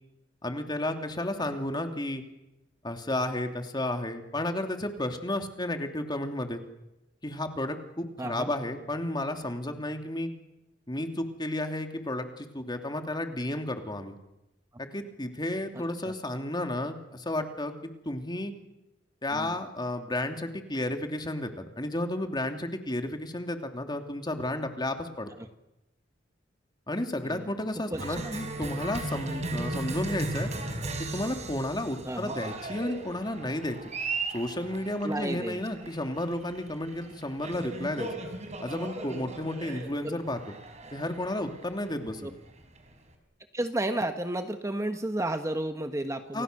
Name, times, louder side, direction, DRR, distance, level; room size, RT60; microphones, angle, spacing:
voice 1, 0.4-2.2 2.8-6.6 7.2-10.3 10.9-14.2 14.8-17.7 18.0-18.5 19.2-25.3 26.9-30.5 31.0-33.9 34.3-38.1 38.6-40.5 40.9-42.2 46.3-46.4, left 1 dB, 25° left, 5 dB, 2.9 m, -32 dB
voice 2, 8.2-8.5 15.7-16.1 19.3-19.5 27.2-27.6 27.9-28.3 32.0-32.4 35.0-35.6 39.7-40.2 42.2-42.3 43.5-46.4, right 1 dB, 15° right, 7 dB, 1.4 m, -33 dB
Cheering, 27.9-43.1, right 2 dB, 40° right, 4.8 m, -37 dB
30.0 x 26.0 x 6.8 m, 0.93 s
head